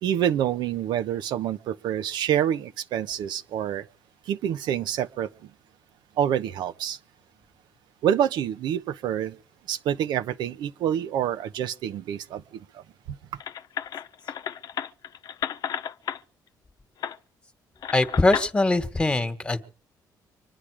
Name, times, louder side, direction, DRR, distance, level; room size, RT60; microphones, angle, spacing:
voice 1, 0.0-3.9 4.3-5.3 6.2-7.0 8.0-9.4 9.7-13.2, right 10 dB, 85° right, 0.9 m, -27 dB
sound 1, 13.4-16.2 17.0-17.2 17.8-18.5, left 9 dB, 55° left, 0.8 m, -32 dB
voice 2, 17.9-19.6, left 2 dB, 15° left, 1.6 m, -22 dB
25.5 x 10.5 x 4.9 m
cardioid pair, 145°, 8 cm